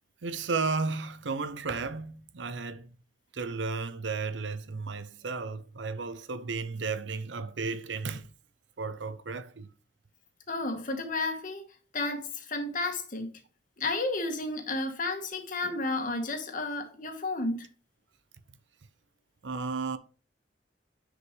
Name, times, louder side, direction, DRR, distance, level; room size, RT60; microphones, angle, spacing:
voice 1, 0.2-2.9 3.3-8.3 8.8-9.7 19.4-20.0, right 4 dB, 85° right, 0.8 m, -33 dB
voice 2, 10.5-11.7 11.9-13.3 13.8-17.7, left 2 dB, 50° left, 1.8 m, -32 dB
9.8 x 5.1 x 3.4 m
head